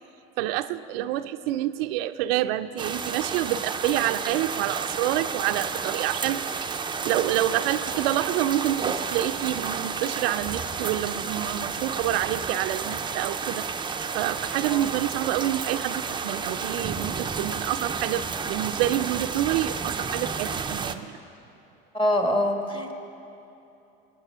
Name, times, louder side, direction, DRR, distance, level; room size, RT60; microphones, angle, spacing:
voice 1, 0.4-6.5 7.0-21.1, right 13 dB, 80° right, 10 dB, 0.5 m, -28 dB
sound 1, 2.8-21.0, right 5 dB, 15° right, 0.5 m, -31 dB
voice 2, 21.9-22.9, left 1 dB, 20° left, 4 dB, 1.6 m, -25 dB
18.5 x 8.5 x 5.6 m, 2.9 s
supercardioid pair, 100°, 29 cm